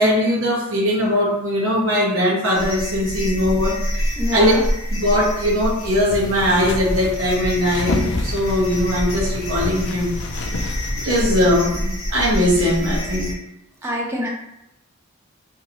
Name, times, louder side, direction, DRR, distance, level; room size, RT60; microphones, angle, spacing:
voice 1, 0.0-3.8 4.3-4.5 4.9-10.1 11.0-13.3 14.2-14.3, equal, 70° right, -5 dB, 1.1 m, -20 dB
sound 1, 2.5-13.3, equal, 80° left, 0.8 m, -27 dB
voice 2, 4.2-4.6 13.8-14.3, equal, 15° right, -2 dB, 0.6 m, -25 dB
sound 2, 6.1-11.6, left 2 dB, 60° left, 0.4 m, -29 dB
2.9 x 2.9 x 2.6 m, 0.85 s
head